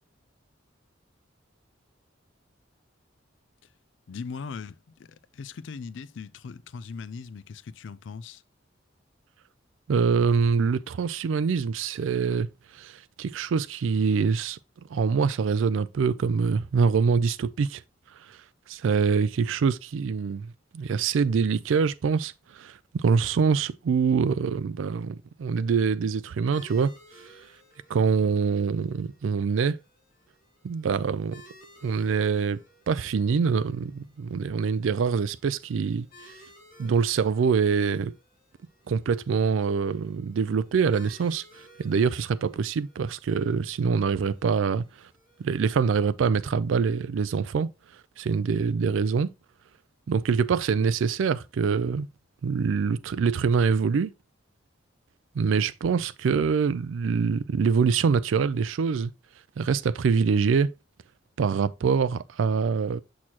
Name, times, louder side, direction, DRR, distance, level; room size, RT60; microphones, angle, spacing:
voice 1, 4.1-8.4, left 5 dB, 70° left, 0.4 m, -39 dB
voice 2, 9.9-12.5 12.7-14.6 14.9-17.8 18.3-18.4 18.7-26.9 27.9-29.8 30.6-31.4 31.8-32.6 32.9-36.3 36.8-38.1 38.9-41.4 41.8-44.8 45.4-47.7 48.2-49.3 50.1-52.1 52.4-54.1 55.4-59.1 59.6-60.7 61.4-63.0, right 5 dB, 90° right, 0.4 m, -25 dB
sound 1, 26.5-45.7, equal, 45° left, 2.5 m, -56 dB
6.3 x 6.1 x 2.8 m
head